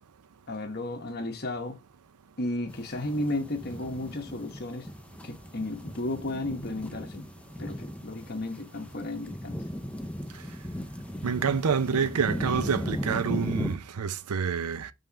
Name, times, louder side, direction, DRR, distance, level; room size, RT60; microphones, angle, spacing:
voice 1, 0.5-1.8 2.4-4.9 5.2-7.3 7.6-9.6, left 1 dB, 45° left, 1.1 m, -33 dB
sound 1, 2.7-13.7, equal, 5° left, 0.5 m, -37 dB
voice 2, 11.2-14.9, right 6 dB, 85° right, 0.6 m, -27 dB
5.5 x 3.6 x 5.6 m
head